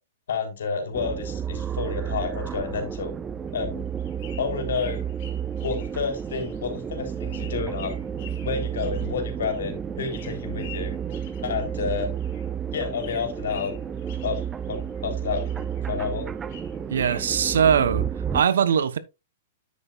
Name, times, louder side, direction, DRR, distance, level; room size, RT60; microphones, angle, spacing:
voice 1, 0.3-3.1 3.5-3.9 4.4-5.0 5.6-7.9 8.4-11.0 11.4-12.1 12.7-13.7 14.2-14.4 14.7-16.3, left 5 dB, 85° left, 3.7 m, -30 dB
sound 1, 0.9-18.4, right 8 dB, 15° right, 0.4 m, -31 dB
sound 2, 3.5-12.5 12.8-15.0 15.3-17.4, left 9 dB, 45° left, 4.0 m, -49 dB
voice 2, 16.9-18.1 18.3-19.0, right 7 dB, 85° right, 1.0 m, -21 dB
9.8 x 8.4 x 2.5 m
hypercardioid pair, 165°, 0 cm